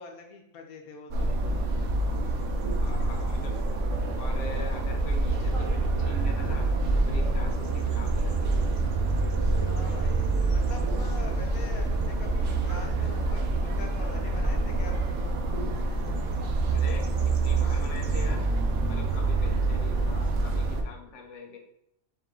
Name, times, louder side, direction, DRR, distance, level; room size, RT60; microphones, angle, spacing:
voice 1, 0.0-1.3 9.6-10.2 10.5-15.0, left 3 dB, 90° left, 3 dB, 1.2 m, -44 dB
sound 1, 1.1-20.8, right 3 dB, 65° right, 1.0 m, -26 dB
voice 2, 2.8-3.6 4.2-8.6 16.7-18.5 18.9-21.6, left 3 dB, 65° left, 2 dB, 1.0 m, -43 dB
5.2 x 2.7 x 3.7 m, 0.80 s
omnidirectional pair, 1.5 m